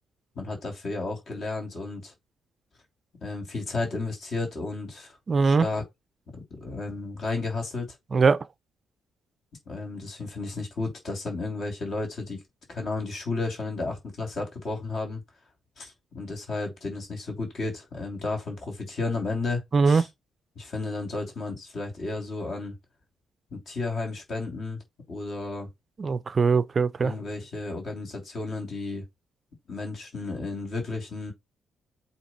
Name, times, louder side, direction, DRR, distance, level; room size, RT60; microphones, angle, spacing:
voice 1, 0.3-2.1 3.2-5.2 5.4-5.8 6.5-8.0 9.7-12.4 12.7-15.2 15.8-20.1 20.5-22.8 23.5-24.8 25.1-25.7 27.0-29.0 29.7-31.3, left 3 dB, 55° left, 3.0 m, -33 dB
voice 2, 5.3-5.7 8.1-8.5 19.7-20.0 26.0-27.1, right 4 dB, 40° right, 0.4 m, -21 dB
8.1 x 2.9 x 4.3 m
cardioid pair, 90°, 0 cm